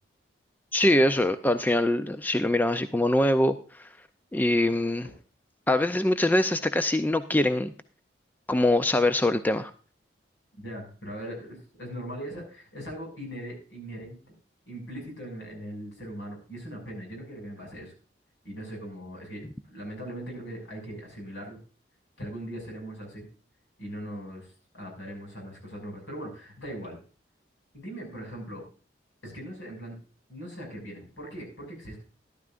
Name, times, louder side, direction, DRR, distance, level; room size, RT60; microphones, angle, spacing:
voice 1, 0.7-3.9 4.3-5.1 5.7-7.7 8.5-9.7, left 1 dB, 10° left, 10 dB, 0.4 m, -23 dB
voice 2, 10.5-14.2 14.7-17.9 18.4-21.6 22.2-23.3 23.8-27.0 27.7-28.7 29.2-30.0 30.3-32.0, equal, 85° left, 2 dB, 6.1 m, -40 dB
13.0 x 12.0 x 2.5 m, 0.37 s
head